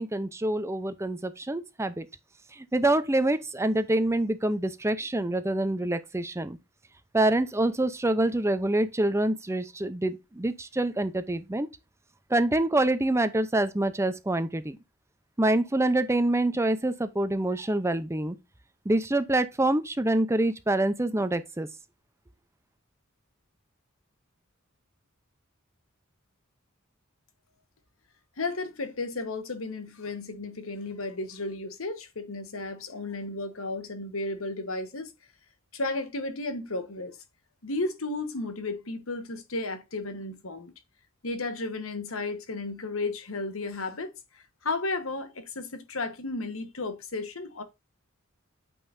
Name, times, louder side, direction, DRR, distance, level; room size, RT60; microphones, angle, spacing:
voice 1, 0.0-2.1 2.5-6.6 7.1-11.7 12.3-14.8 15.4-18.4 18.9-21.7, right 1 dB, 15° right, 0.6 m, -26 dB
voice 2, 28.4-35.1 35.7-37.2 37.6-40.7 41.2-44.1 44.6-47.6, left 2 dB, 85° left, 1.3 m, -33 dB
8.9 x 5.4 x 2.6 m
head